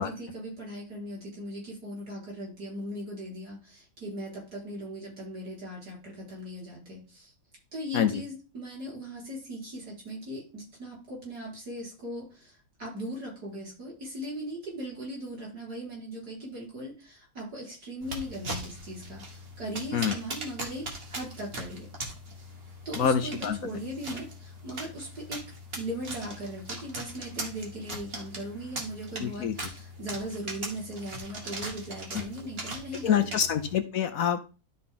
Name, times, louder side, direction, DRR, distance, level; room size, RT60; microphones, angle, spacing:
voice 1, 0.0-7.3 7.7-21.9 22.9-25.5 25.8-33.4, equal, 70° right, -3 dB, 5.3 m, -39 dB
sound 1, 18.0-33.8, right 1 dB, 40° right, 1.8 m, -40 dB
voice 2, 23.0-23.6 29.2-29.5 32.1-32.2 33.0-34.4, left 8 dB, 65° left, 9 dB, 1.1 m, -26 dB
12.5 x 4.3 x 3.8 m, 0.32 s
omnidirectional pair, 1.7 m